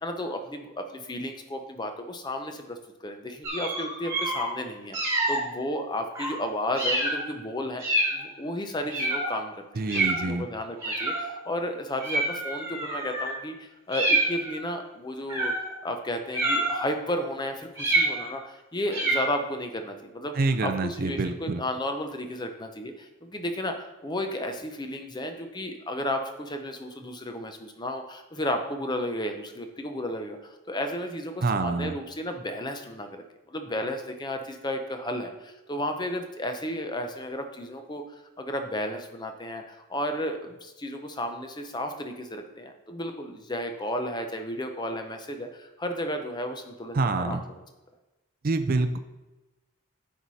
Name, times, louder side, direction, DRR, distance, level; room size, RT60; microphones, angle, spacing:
voice 1, 0.0-15.5 15.8-20.3 20.6-47.4, left 1 dB, 20° left, 6 dB, 0.6 m, -33 dB
sound 1, 3.4-4.5 4.9-5.4 6.2-6.4 6.7-7.2 7.8-8.2 8.9-9.3 9.9-10.2 10.8-11.4 12.0-13.3 13.9-14.6 15.3-15.7 16.3-16.9 17.8-18.4 18.9-19.4, right 2 dB, 15° right, 1.8 m, -27 dB
voice 2, 9.8-10.5 20.4-21.6 31.4-32.0 46.9-47.4 48.4-49.0, right 3 dB, 40° right, 8 dB, 0.4 m, -26 dB
9.5 x 4.8 x 4.1 m, 1.0 s
head